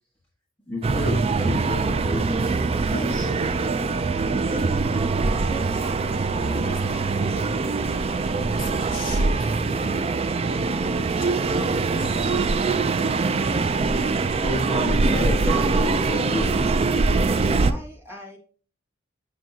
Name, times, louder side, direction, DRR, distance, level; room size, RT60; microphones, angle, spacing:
voice 1, 0.7-3.4 14.4-16.5, left 1 dB, 10° left, 1.4 m, -31 dB
sound 1, 0.8-17.7, right 3 dB, 30° right, 0.3 m, -23 dB
voice 2, 2.9-4.5 5.3-12.2, left 1 dB, 45° left, 2.0 m, -39 dB
voice 3, 17.3-18.4, left 1 dB, 10° right, 2.1 m, -39 dB
7.5 x 6.1 x 2.8 m
head